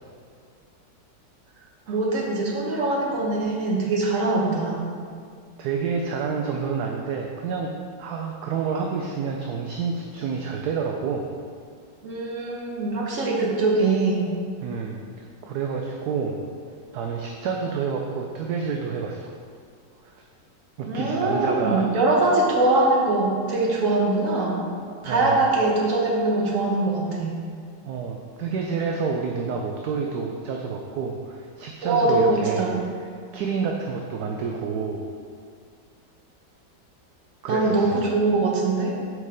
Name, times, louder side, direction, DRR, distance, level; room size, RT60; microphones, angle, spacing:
voice 1, 1.9-4.8 12.0-14.3 20.9-24.6 25.0-27.4 31.8-32.7 37.5-39.0, right 2 dB, 50° right, -2 dB, 1.5 m, -22 dB
voice 2, 5.6-7.7 8.0-11.3 14.6-16.4 16.9-19.3 20.0-20.1 20.8-21.9 25.0-25.5 27.8-32.7 33.3-35.1 37.4-38.0, right 5 dB, 70° right, 1 dB, 1.1 m, -29 dB
6.5 x 5.5 x 5.1 m, 2.2 s
omnidirectional pair, 1.9 m